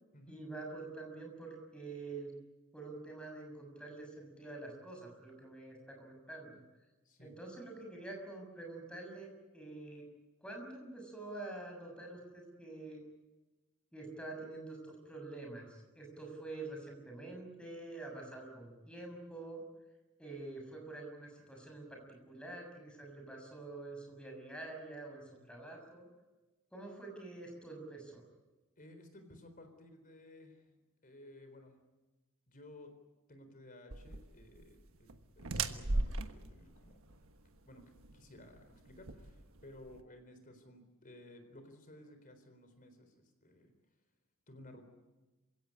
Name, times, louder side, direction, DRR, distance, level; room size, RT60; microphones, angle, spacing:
voice 1, 0.3-2.3 2.7-6.6 7.2-10.0 10.4-13.0 13.9-19.6 20.2-26.1 26.7-28.2, right 2 dB, 5° left, 2 dB, 6.5 m, -47 dB
voice 2, 28.8-30.7 31.0-31.8 32.5-32.9 33.3-37.1 37.4-43.7 44.5-44.8, left 1 dB, 40° left, 7 dB, 4.0 m, -56 dB
sound 1, 33.9-40.0, right 2 dB, 65° right, 1.4 m, -39 dB
27.5 x 17.0 x 9.9 m, 1.1 s
head